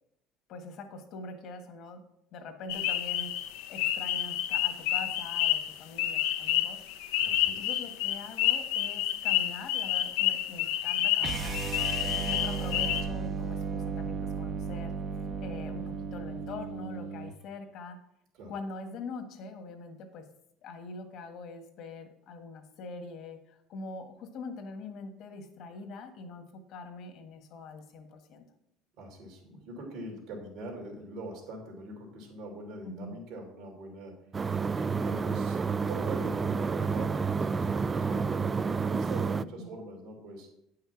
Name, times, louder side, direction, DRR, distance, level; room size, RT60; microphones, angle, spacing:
voice 1, 0.5-2.0 2.3-6.8 7.4-11.6 12.0-14.9 15.4-18.0 18.5-20.2 20.6-28.4 32.8-33.2 39.4-39.8, left 3 dB, 60° left, 6 dB, 1.6 m, -43 dB
sound 1, 2.7-13.0, left 12 dB, 85° left, 0.7 m, -29 dB
voice 2, 7.2-7.8 11.9-12.4 18.3-18.5 29.0-40.5, right 1 dB, 70° right, 1 dB, 2.8 m, -43 dB
sound 2, 11.2-17.4, right 5 dB, 40° right, 0.8 m, -35 dB
sound 3, 34.3-39.4, right 5 dB, 25° right, 0.3 m, -29 dB
9.0 x 5.7 x 5.8 m, 0.77 s
supercardioid pair, 110°, 0 cm